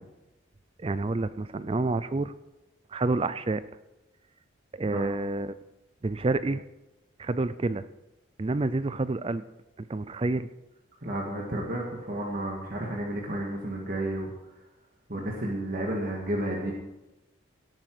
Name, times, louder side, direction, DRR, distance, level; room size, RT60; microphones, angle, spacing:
voice 1, 0.8-2.3 2.9-3.6 4.7-5.6 6.0-6.6 7.2-7.9 8.4-9.4 9.8-10.5, right 2 dB, 30° right, 14 dB, 0.4 m, -28 dB
voice 2, 11.0-14.3 15.1-16.7, right 1 dB, 45° right, -2 dB, 2.0 m, -31 dB
17.5 x 8.9 x 5.0 m, 0.99 s
head